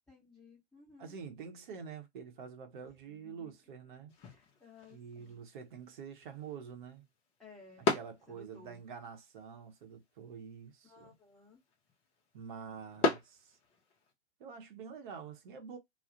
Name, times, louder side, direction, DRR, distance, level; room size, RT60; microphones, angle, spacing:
voice 1, 0.1-1.2 3.0-3.6 4.2-5.5 7.4-7.9 8.3-8.8 10.8-11.6, left 4 dB, ahead, 0.9 m, -57 dB
voice 2, 1.0-4.1 4.9-7.1 7.8-11.2 12.3-13.6 14.4-15.8, right 6 dB, 45° right, 0.8 m, -47 dB
sound 1, 4.1-14.1, left 3 dB, 20° left, 0.5 m, -40 dB
2.3 x 2.1 x 2.7 m
figure-of-eight pair, 110°, 34 cm